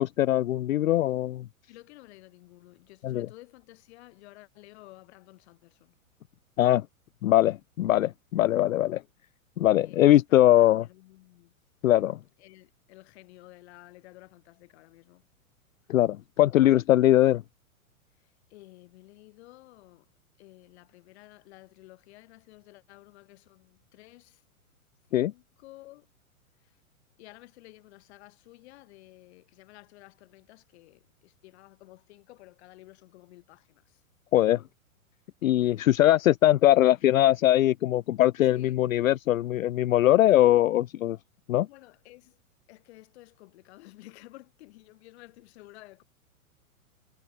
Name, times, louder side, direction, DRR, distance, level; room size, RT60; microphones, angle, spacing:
voice 1, 0.0-1.5 3.0-3.3 6.6-6.9 7.2-9.0 9.6-10.8 11.8-12.2 15.9-17.4 25.1-25.3 34.3-34.6 35.4-41.2 41.5-41.7, left 13 dB, 70° left, 0.5 m, -21 dB
voice 2, 1.7-6.0 9.8-11.5 12.4-15.3 18.1-20.1 20.4-24.4 25.1-26.1 26.6-26.8 27.2-34.0 35.6-36.0 38.5-38.8 41.6-42.4 42.7-46.0, left 19 dB, 50° left, 6.9 m, -53 dB
figure-of-eight pair, 110°, 43 cm